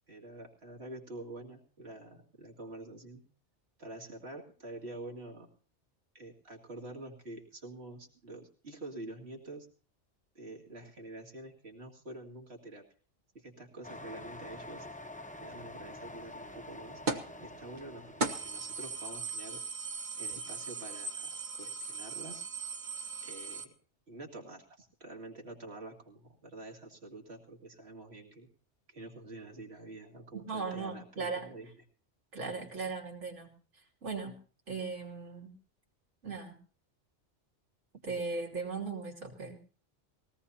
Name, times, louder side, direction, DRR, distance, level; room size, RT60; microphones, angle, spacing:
voice 1, 0.1-3.2 3.8-5.5 6.1-9.7 10.3-12.8 13.3-14.9 15.4-17.0 17.4-19.6 20.2-22.4 23.2-23.7 24.1-28.5 28.9-31.7, right 2 dB, 60° right, 1 dB, 2.6 m, -47 dB
sound 1, 13.8-19.1, left 1 dB, 10° left, 0.7 m, -47 dB
sound 2, 17.1-17.4 17.8-17.9 18.2-23.6, right 3 dB, 40° right, 1.3 m, -38 dB
voice 2, 30.3-31.5 32.3-34.4 34.7-35.5 36.2-36.6 38.0-39.6, right 4 dB, 85° right, -1 dB, 3.2 m, -38 dB
20.5 x 17.5 x 2.8 m, 0.40 s
omnidirectional pair, 1.2 m